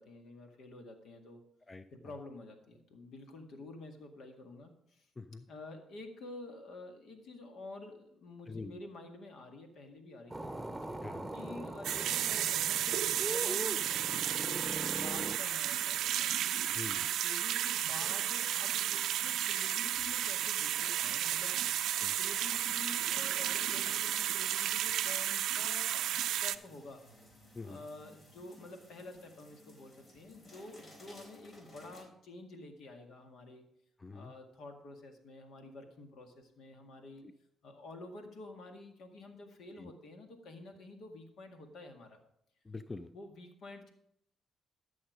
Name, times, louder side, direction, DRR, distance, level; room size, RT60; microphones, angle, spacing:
voice 1, 0.0-1.4 1.9-5.1 5.5-10.6 11.3-13.9 14.3-16.3 17.1-21.6 22.2-27.1 27.6-33.6 34.1-37.2 37.6-42.2 43.1-43.9, left 2 dB, 70° left, 5 dB, 1.9 m, -50 dB
voice 2, 8.5-8.8 11.0-11.3 16.7-17.1 22.0-22.2 27.5-27.8 34.0-34.3 39.8-39.9 42.7-43.1, left 3 dB, 25° left, 12 dB, 0.5 m, -45 dB
sound 1, 10.3-15.4, right 2 dB, 10° right, 1.1 m, -41 dB
sound 2, 11.8-26.6, right 11 dB, 75° right, 0.4 m, -33 dB
sound 3, 20.1-32.1, left 1 dB, 50° left, 3.9 m, -58 dB
13.5 x 6.3 x 5.0 m, 0.74 s
supercardioid pair, 55°, 0 cm